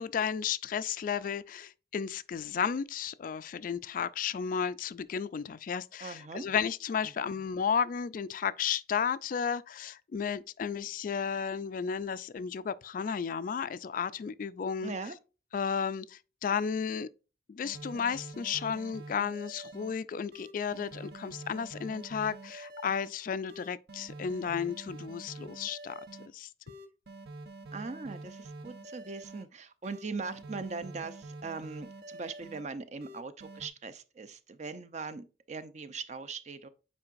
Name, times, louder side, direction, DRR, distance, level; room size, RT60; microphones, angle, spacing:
voice 1, 0.0-14.9 15.5-17.1 17.5-25.9 26.3-26.5, left 7 dB, 50° left, 0.3 m, -33 dB
voice 2, 6.0-6.4 14.8-15.2 27.7-36.7, right 4 dB, 40° right, 0.6 m, -40 dB
sound 1, 17.6-19.9 20.3-23.1 23.5-26.3 26.7-29.4 29.8-32.6 33.0-33.7, right 2 dB, 60° right, 0.9 m, -46 dB
8.7 x 4.6 x 2.5 m
head